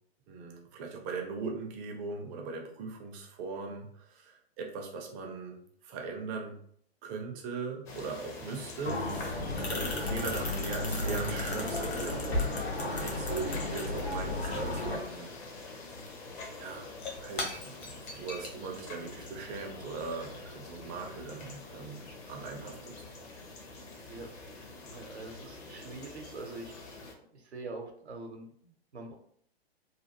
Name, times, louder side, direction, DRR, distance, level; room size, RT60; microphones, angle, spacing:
voice 1, 0.3-5.6 5.8-6.6 7.0-9.4 9.7-12.5 12.8-15.3 16.6-16.9 17.2-23.0, right 4 dB, 25° right, 2 dB, 0.5 m, -40 dB
sound 1, 7.9-27.1, left 3 dB, 30° left, 0.6 m, -45 dB
sound 2, 8.9-15.0, left 2 dB, 75° left, 1.1 m, -33 dB
Shatter / Crushing, 16.8-21.2, left 3 dB, 50° left, 1.0 m, -44 dB
voice 2, 24.9-26.8 27.3-29.2, right 2 dB, 85° right, 3 dB, 0.8 m, -44 dB
3.2 x 2.2 x 2.8 m, 0.64 s
figure-of-eight pair, 115°, 32 cm